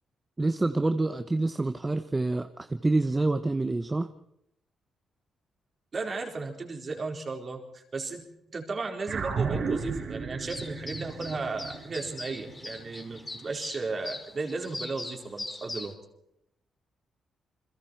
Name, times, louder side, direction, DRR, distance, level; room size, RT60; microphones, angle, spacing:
voice 1, 0.4-4.1, right 2 dB, 20° right, 9 dB, 0.9 m, -27 dB
voice 2, 5.9-8.2 8.5-15.9, right 3 dB, 40° right, 2 dB, 4.3 m, -35 dB
sound 1, 9.1-13.7, right 5 dB, 60° right, 5.1 m, -34 dB
sound 2, 10.5-15.9, left 2 dB, 20° left, 2.5 m, -41 dB
29.5 x 22.0 x 4.6 m, 0.79 s
cardioid pair, 85°, 0 cm